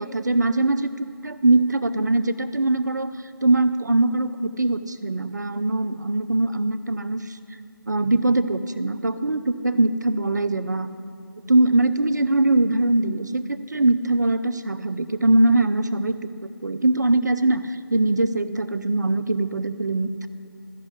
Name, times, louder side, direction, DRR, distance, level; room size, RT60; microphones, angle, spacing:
voice 1, 0.0-7.4 7.9-10.9 11.5-20.3, right 2 dB, 50° right, 12 dB, 0.4 m, -22 dB
14.5 x 5.7 x 4.0 m, 2.5 s
figure-of-eight pair, 160°, 12 cm